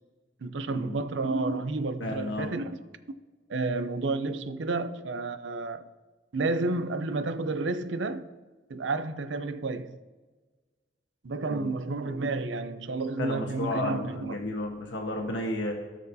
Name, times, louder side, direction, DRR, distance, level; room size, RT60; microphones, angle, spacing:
voice 1, 0.4-2.8 3.5-5.9 6.3-8.3 8.7-10.0 11.2-14.4, right 3 dB, 85° right, 0.6 m, -31 dB
voice 2, 2.0-2.5 11.5-11.7 13.2-15.7, left 1 dB, 90° left, 1.3 m, -32 dB
17.0 x 6.2 x 2.8 m
head